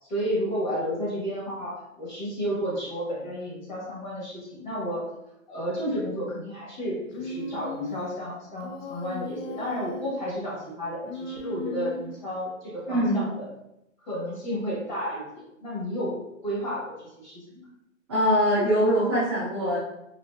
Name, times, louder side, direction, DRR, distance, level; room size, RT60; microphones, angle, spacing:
voice 1, 0.0-5.1 5.5-13.5 14.0-17.7, equal, 35° left, -6 dB, 1.4 m, -32 dB
Human voice, 7.1-8.1 8.6-10.2 11.0-12.3, left 3 dB, 65° left, 0.5 m, -37 dB
voice 2, 12.9-13.3 18.1-19.8, equal, 20° right, -12 dB, 0.8 m, -23 dB
4.0 x 2.5 x 2.3 m, 0.85 s
hypercardioid pair, 170°, 40 cm